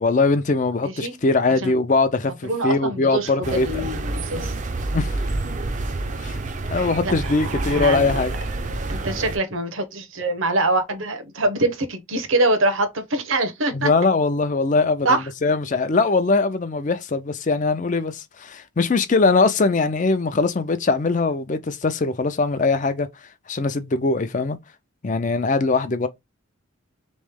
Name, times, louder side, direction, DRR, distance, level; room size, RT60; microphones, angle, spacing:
voice 1, 0.0-3.7 4.9-5.2 6.2-6.4 6.7-8.3 13.7-23.1 23.5-24.6 25.0-26.1, left 3 dB, 35° left, 0.5 m, -21 dB
voice 2, 0.8-1.1 1.5-1.7 2.2-4.5 7.0-8.2 8.9-13.9 15.0-15.3, right 2 dB, 70° right, 0.9 m, -24 dB
sound 1, 3.4-9.4, right 2 dB, 35° right, 0.5 m, -28 dB
3.6 x 3.2 x 3.6 m
head